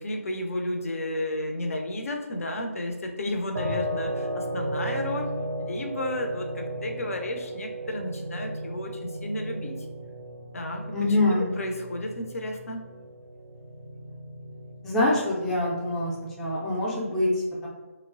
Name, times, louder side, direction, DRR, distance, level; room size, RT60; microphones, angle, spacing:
voice 1, 0.0-5.3 5.6-9.8 10.5-11.0 11.2-12.8, left 1 dB, 70° left, 3 dB, 0.4 m, -32 dB
sound 1, 3.5-16.5, right 1 dB, 65° right, 0.4 m, -35 dB
voice 2, 10.9-11.6 14.8-16.1 16.4-17.7, left 1 dB, 5° left, -6 dB, 0.3 m, -25 dB
3.1 x 2.0 x 2.5 m, 1.2 s
figure-of-eight pair, 150°, 8 cm